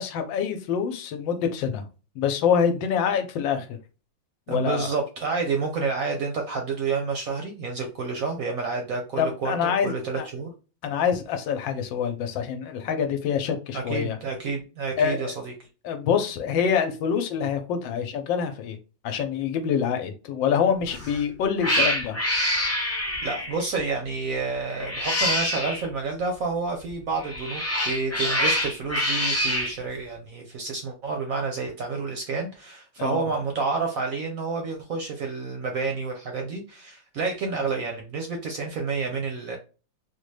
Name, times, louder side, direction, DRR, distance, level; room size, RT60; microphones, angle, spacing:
voice 1, 0.0-1.9 2.1-3.8 4.5-4.9 9.2-10.3 10.8-14.2 15.0-15.2 15.8-18.8 19.0-22.2 33.0-33.2, left 7 dB, 85° left, 7 dB, 1.4 m, -26 dB
voice 2, 4.5-10.5 13.7-15.5 23.2-39.6, right 4 dB, 65° right, 3 dB, 0.9 m, -29 dB
Cat, 20.9-21.2 21.6-23.6 24.7-25.8 27.2-29.7, equal, 20° left, 0.4 m, -26 dB
3.8 x 2.2 x 3.2 m, 0.33 s
omnidirectional pair, 2.0 m